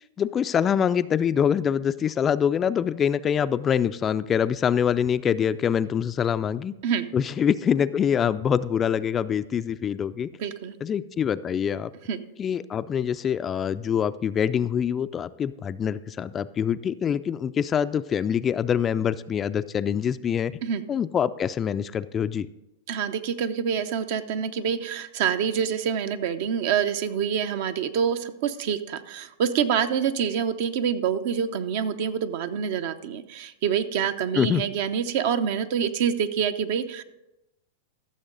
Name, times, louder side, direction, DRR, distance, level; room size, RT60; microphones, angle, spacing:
voice 1, 0.2-6.7 7.1-10.3 10.8-11.9 12.4-20.5 20.9-22.5 34.3-34.6, left 8 dB, 25° left, 14 dB, 0.3 m, -25 dB
voice 2, 10.4-10.7 12.1-12.2 20.6-20.8 22.9-37.0, right 7 dB, 60° right, 11 dB, 0.7 m, -26 dB
14.5 x 6.5 x 3.9 m, 0.92 s
hypercardioid pair, 115°, 0 cm